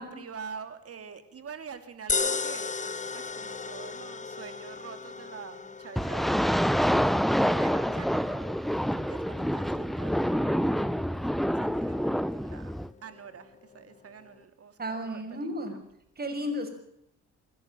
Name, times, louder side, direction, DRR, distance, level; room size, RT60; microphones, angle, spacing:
voice 1, 0.0-7.0 7.4-11.2 11.4-15.8, right 6 dB, 50° right, 9 dB, 3.1 m, -46 dB
sound 1, 2.1-14.4, left 4 dB, 25° left, 1.2 m, -38 dB
sound 2, 6.0-12.9, equal, ahead, 0.7 m, -27 dB
voice 2, 14.8-15.7 16.2-16.7, equal, 30° right, 5 dB, 6.2 m, -33 dB
26.5 x 11.0 x 9.1 m, 0.76 s
cardioid pair, 90°, 30 cm